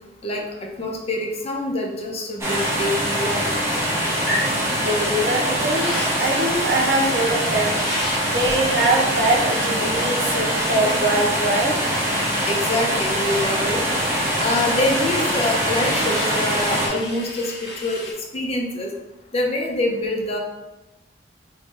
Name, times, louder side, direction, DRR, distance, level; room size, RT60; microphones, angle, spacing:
voice 1, 0.8-3.5 12.5-13.8 14.4-17.5 17.8-18.0 18.3-18.9 19.3-20.4, left 1 dB, 35° left, 0 dB, 0.6 m, -25 dB
sound 1, 2.4-16.9, equal, 15° right, 0.6 m, -23 dB
sound 2, 4.1-18.1, left 1 dB, 90° left, 1.1 m, -34 dB
voice 2, 4.8-7.8 8.3-11.8, right 1 dB, 80° right, -2 dB, 0.8 m, -22 dB
3.1 x 2.7 x 3.3 m, 1.0 s
head